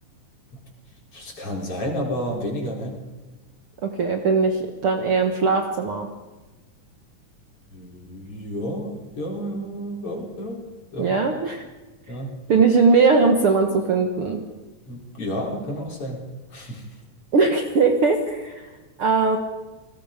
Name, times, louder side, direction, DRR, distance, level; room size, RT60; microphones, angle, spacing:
voice 1, 1.1-3.0 7.7-11.2 12.1-12.4 14.8-16.2 16.5-16.9, equal, 40° left, 0 dB, 5.1 m, -31 dB
voice 2, 3.8-6.1 11.0-11.6 12.5-14.4 17.3-18.7 19.0-19.4, right 4 dB, 50° right, 4 dB, 2.0 m, -20 dB
29.0 x 20.0 x 5.2 m, 1.2 s
omnidirectional pair, 3.9 m